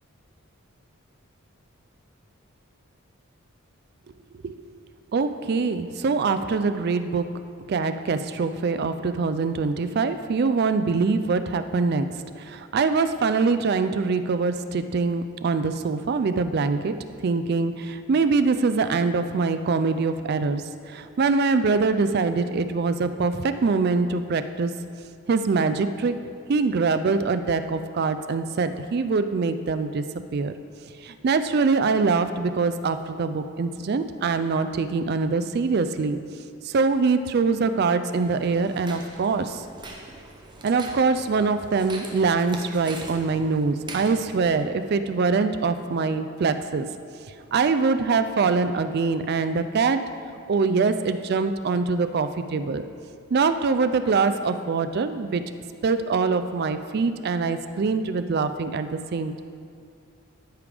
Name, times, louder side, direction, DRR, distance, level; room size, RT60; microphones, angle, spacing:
voice 1, 5.1-7.3 7.7-17.0 17.2-24.7 25.3-26.2 26.5-30.0 30.3-30.5 31.0-36.2 36.6-39.6 40.6-46.9 47.5-50.1 50.5-52.8 53.3-55.4 55.8-59.4, right 4 dB, 45° right, 10 dB, 0.3 m, -24 dB
sound 1, 38.1-44.6, right 2 dB, 20° right, 0.7 m, -42 dB
13.5 x 4.9 x 3.4 m, 2.4 s
head